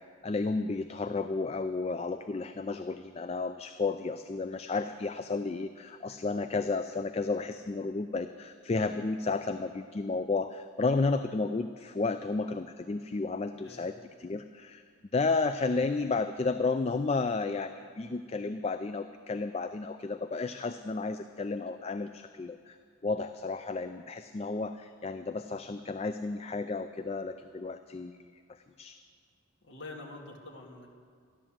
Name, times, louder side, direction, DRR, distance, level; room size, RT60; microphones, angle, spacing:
voice 1, 0.2-14.8 15.1-22.8 23.0-28.2 28.5-29.0, left 3 dB, 30° left, 9 dB, 0.3 m, -32 dB
voice 2, 13.5-13.9 29.6-30.9, left 2 dB, 60° left, 0 dB, 2.3 m, -46 dB
13.5 x 11.5 x 7.4 m, 2.1 s
head